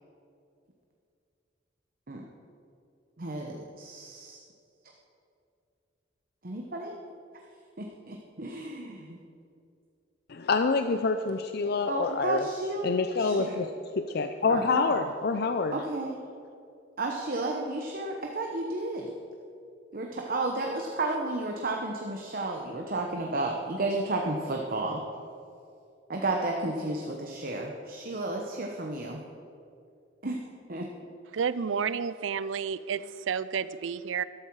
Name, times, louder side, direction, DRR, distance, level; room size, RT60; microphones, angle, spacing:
voice 1, 3.2-4.4 6.4-7.0 7.8-9.2 11.9-12.9 13.2-13.7 14.5-15.0 15.7-16.2 17.0-19.2 19.9-25.0 26.1-29.2 30.2-30.4 30.7-30.9, right 2 dB, 50° right, 1.0 m, -32 dB
voice 2, 10.3-12.4 12.8-13.6 14.0-15.7, left 4 dB, 55° left, 0.5 m, -27 dB
voice 3, 31.3-34.2, right 6 dB, 90° right, 0.5 m, -31 dB
13.0 x 12.5 x 4.8 m
head